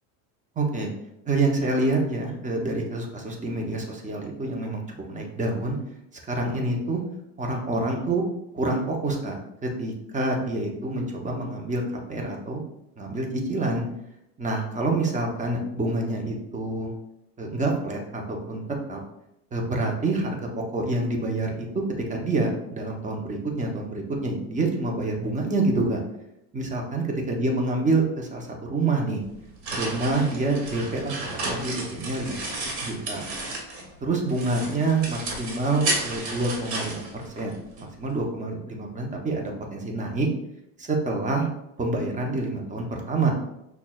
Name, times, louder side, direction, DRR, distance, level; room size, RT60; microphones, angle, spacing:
voice 1, 0.6-0.9 1.3-4.8 5.1-5.8 6.3-7.0 7.4-8.2 8.5-9.4 9.6-11.8 12.1-12.6 13.0-13.8 14.4-16.9 17.4-18.6 18.9-19.0 19.5-20.4 20.7-21.8 22.1-26.0 26.5-29.2 29.7-31.1 31.4-33.2 34.0-40.3 40.8-41.5 41.8-43.3, right 2 dB, 15° right, 1 dB, 0.7 m, -27 dB
sound 1, 29.2-33.9 34.3-37.8, right 2 dB, 50° right, 1.3 m, -32 dB
5.9 x 2.3 x 2.3 m, 0.83 s
supercardioid pair, 115°, 45 cm